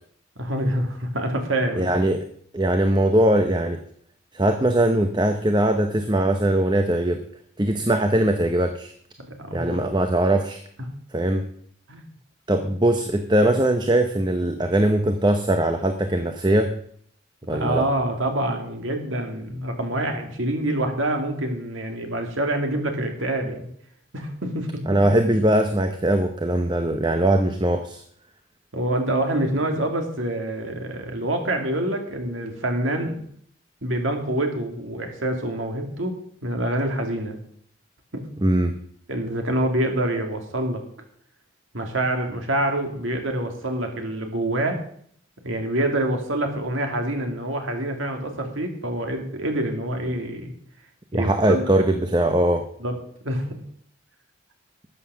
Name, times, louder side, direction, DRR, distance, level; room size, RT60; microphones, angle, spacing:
voice 1, 0.4-1.9 9.2-9.8 11.9-12.1 17.5-23.7 24.1-24.8 28.7-33.2 33.8-37.4 38.1-38.3 39.1-40.8 41.7-44.8 45.4-50.5 51.1-51.6 52.8-52.9 53.2-53.6, right 1 dB, 75° right, 4 dB, 2.4 m, -26 dB
voice 2, 1.7-2.3 2.5-3.8 4.3-7.2 7.6-8.9 9.5-10.6 11.1-11.5 12.5-16.8 17.5-17.9 24.9-28.0 38.4-38.8 51.1-52.7, right 1 dB, 20° right, 7 dB, 0.7 m, -21 dB
12.5 x 8.1 x 6.2 m, 0.64 s
head